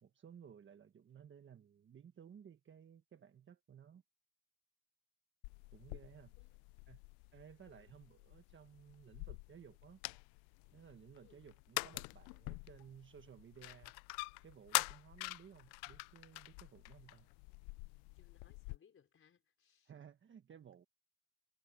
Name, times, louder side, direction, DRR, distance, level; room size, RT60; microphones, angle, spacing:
voice 1, 0.0-4.0 5.7-6.3 6.9-7.0 7.3-10.0 10.7-13.9 14.4-17.3 19.8-20.8, right 8 dB, 30° right, 1.5 m, -58 dB
sound 1, 5.4-18.8, left 27 dB, 75° left, 0.6 m, -45 dB
voice 2, 7.5-8.0 11.2-11.5 18.1-19.9, left 7 dB, 35° left, 5.0 m, -69 dB
supercardioid pair, 110°, 39 cm